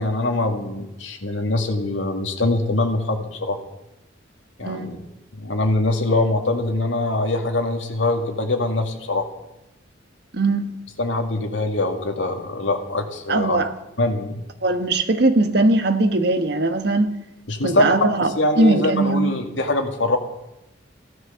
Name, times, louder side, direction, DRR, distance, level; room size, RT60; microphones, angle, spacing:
voice 1, 0.0-3.6 4.6-5.0 5.4-9.3 11.0-13.6 14.0-14.4 17.5-17.9 18.4-20.2, left 2 dB, 85° left, 2.2 m, -23 dB
voice 2, 4.6-5.0 10.3-10.8 13.3-13.7 14.6-17.2 17.6-18.3 18.6-19.3, right 2 dB, 60° right, 1.4 m, -20 dB
16.0 x 12.5 x 7.0 m
head